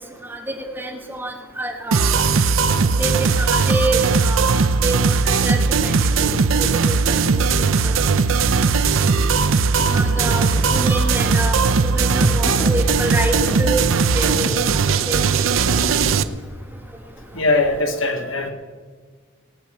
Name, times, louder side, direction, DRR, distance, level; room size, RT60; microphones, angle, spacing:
voice 1, 0.2-2.2 3.0-3.1 3.4-6.3 6.6-8.0 9.9-14.8 15.1-15.2 15.5-15.7, right 1 dB, 10° right, 1 dB, 1.6 m, -27 dB
sound 1, 1.9-16.2, right 4 dB, 80° right, 0.6 m, -18 dB
sound 2, 9.7-17.8, equal, 10° left, 1.9 m, -35 dB
voice 2, 17.3-18.5, left 2 dB, 80° left, 5 dB, 1.5 m, -20 dB
17.5 x 6.2 x 7.7 m, 1.5 s
head